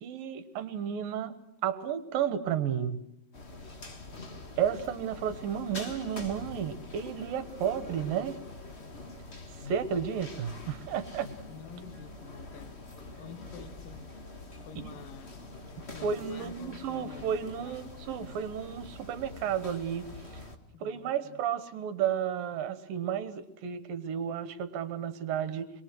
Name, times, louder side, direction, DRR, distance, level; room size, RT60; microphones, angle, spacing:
voice 1, 0.0-1.4 1.6-3.0 4.6-8.4 9.6-11.3 14.8-14.9 16.0-20.4 20.8-25.7, right 8 dB, 70° right, 12 dB, 2.9 m, -32 dB
sound 1, 3.3-20.6, left 2 dB, 50° left, 0.7 m, -45 dB
voice 2, 11.5-12.8 13.2-14.0 14.6-15.3 15.9-17.9 20.7-21.4, left 7 dB, 70° left, 8 dB, 3.0 m, -49 dB
27.0 x 22.0 x 7.7 m, 0.77 s
omnidirectional pair, 4.5 m